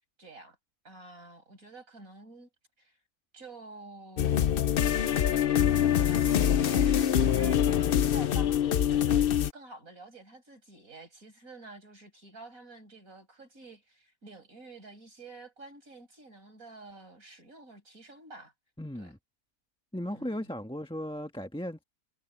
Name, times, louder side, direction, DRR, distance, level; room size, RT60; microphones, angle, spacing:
voice 1, 0.2-0.6 0.8-2.5 2.8-3.0 3.3-4.7 6.1-18.5 19.0-19.1 20.1-20.4, right 2 dB, 65° right, 8.1 m, -49 dB
sound 1, 4.2-9.5, left 10 dB, 60° left, 0.6 m, -24 dB
voice 2, 18.8-19.2 19.9-21.8, equal, 5° left, 1.2 m, -36 dB
omnidirectional pair, 1.5 m